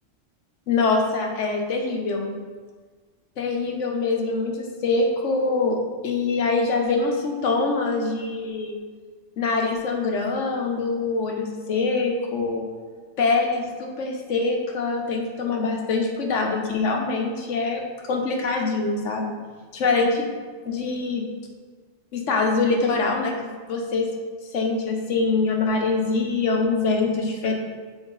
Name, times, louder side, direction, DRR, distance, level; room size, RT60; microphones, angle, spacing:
voice 1, 0.7-2.3 3.4-5.8 6.0-8.8 9.4-12.7 13.2-17.8 18.1-19.3 19.7-20.3 20.7-21.3 22.1-24.1 24.5-27.5, left 3 dB, 75° left, 1 dB, 1.2 m, -24 dB
7.0 x 4.6 x 4.0 m, 1.5 s
omnidirectional pair, 1.3 m